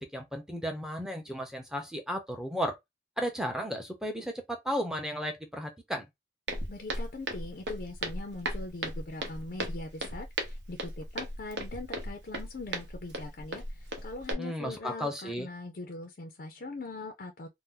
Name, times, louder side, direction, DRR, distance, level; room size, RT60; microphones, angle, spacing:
voice 1, 0.0-2.8 3.2-6.1 14.4-15.5, equal, 5° right, 0.6 m, -34 dB
Walk footsteps, 6.5-14.3, right 1 dB, 75° right, 0.8 m, -37 dB
voice 2, 6.7-17.5, left 2 dB, 50° left, 0.5 m, -41 dB
2.7 x 2.1 x 3.7 m
head